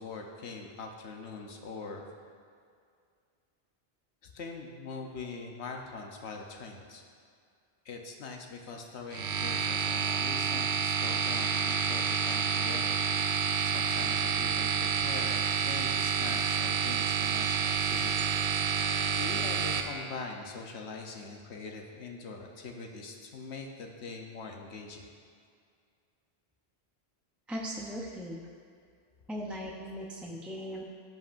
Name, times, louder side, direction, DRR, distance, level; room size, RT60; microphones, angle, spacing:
voice 1, 0.0-2.1 4.2-7.0 7.8-13.0 13.2-18.3 18.8-25.1, left 4 dB, 85° left, 2 dB, 1.1 m, -43 dB
sound 1, 9.1-19.8, right 6 dB, 85° right, 0.9 m, -29 dB
voice 2, 27.5-28.4 29.3-30.8, equal, ahead, -2 dB, 0.5 m, -38 dB
15.5 x 5.4 x 2.6 m, 2.2 s
omnidirectional pair, 1.1 m